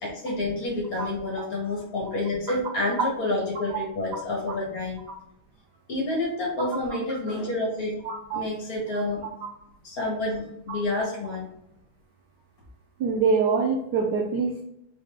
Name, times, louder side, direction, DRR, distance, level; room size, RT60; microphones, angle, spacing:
voice 1, 0.0-5.0 5.9-8.0 8.3-9.2 9.8-11.4, left 2 dB, 45° left, -2 dB, 1.6 m, -29 dB
voice 2, 8.0-8.4 9.4-9.5 13.0-14.6, right 4 dB, 75° right, 1 dB, 0.9 m, -24 dB
4.0 x 3.9 x 3.3 m, 0.79 s
omnidirectional pair, 2.4 m